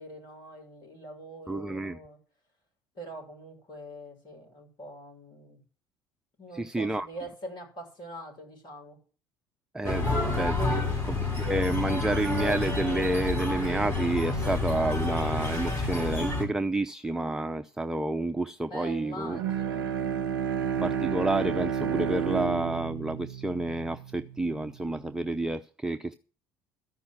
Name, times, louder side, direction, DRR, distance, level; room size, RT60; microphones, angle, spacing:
voice 1, 0.0-2.2 2.9-5.6 6.4-9.0 9.8-10.4 18.7-19.9, right 1 dB, 40° left, 6.5 m, -44 dB
voice 2, 1.5-2.0 6.5-7.1 9.7-19.4 20.8-26.2, right 2 dB, 5° right, 0.6 m, -30 dB
sound 1, 9.8-16.5, left 3 dB, 20° left, 4.7 m, -29 dB
Bowed string instrument, 19.2-24.6, right 8 dB, 70° right, 0.5 m, -31 dB
13.5 x 5.6 x 7.6 m
figure-of-eight pair, 60°, 11 cm